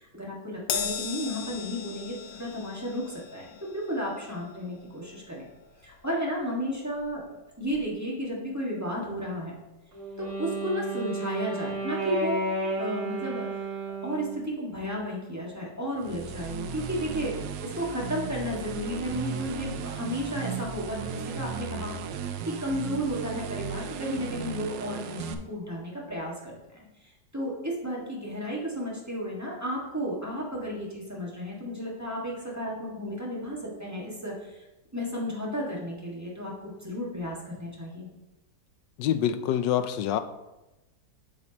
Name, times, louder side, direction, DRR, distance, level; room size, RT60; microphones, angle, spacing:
voice 1, 0.0-5.4 5.8-7.2 7.6-9.5 10.2-12.4 12.8-13.7 14.0-21.9 22.4-34.7 34.9-38.1, equal, 10° right, -4 dB, 1.5 m, -33 dB
Crash cymbal, 0.7-7.3 7.6-7.9 8.9-9.0, left 6 dB, 65° left, 1.2 m, -38 dB
Wind instrument woodwind instrument, 9.9-14.5, right 2 dB, 55° right, 3.1 m, -32 dB
sound 1, 16.0-25.3, right 6 dB, 90° right, 1.3 m, -36 dB
voice 2, 39.0-40.2, left 10 dB, 85° left, 11 dB, 1.2 m, -26 dB
8.5 x 6.6 x 2.9 m, 0.98 s
omnidirectional pair, 1.9 m